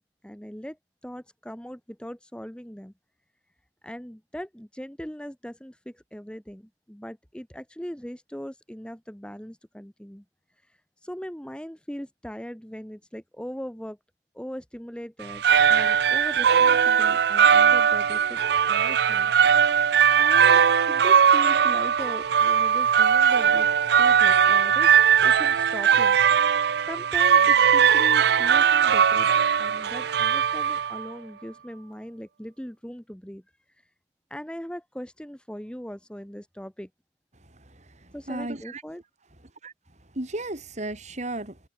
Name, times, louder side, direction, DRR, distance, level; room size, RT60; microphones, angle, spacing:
voice 1, 0.0-2.9 3.8-10.2 11.0-14.0 14.3-18.4 18.7-19.3 20.1-23.7 24.0-24.9 25.2-26.2 26.9-29.3 29.6-33.4 34.3-36.9 38.1-39.0, equal, 5° left, 1.3 m, -39 dB
sound 1, 15.2-31.1, right 7 dB, 65° right, 0.4 m, -20 dB
voice 2, 37.7-38.8 39.6-39.7 40.1-41.6, right 2 dB, 40° right, 3.5 m, -34 dB
head